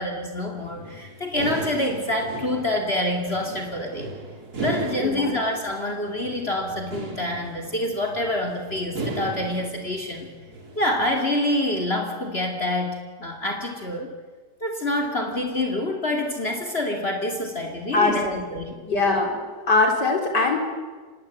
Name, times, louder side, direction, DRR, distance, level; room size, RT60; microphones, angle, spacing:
voice 1, 0.0-4.1 4.6-10.3 10.8-14.1 14.6-18.8, left 1 dB, 35° left, 3 dB, 2.8 m, -27 dB
sound 1, 0.6-11.1, right 3 dB, 65° right, 3.4 m, -36 dB
voice 2, 5.0-5.4 17.9-18.4 18.9-19.4 19.7-20.6, left 3 dB, 90° left, 3 dB, 4.7 m, -21 dB
25.5 x 20.0 x 9.2 m, 1.5 s
omnidirectional pair, 1.8 m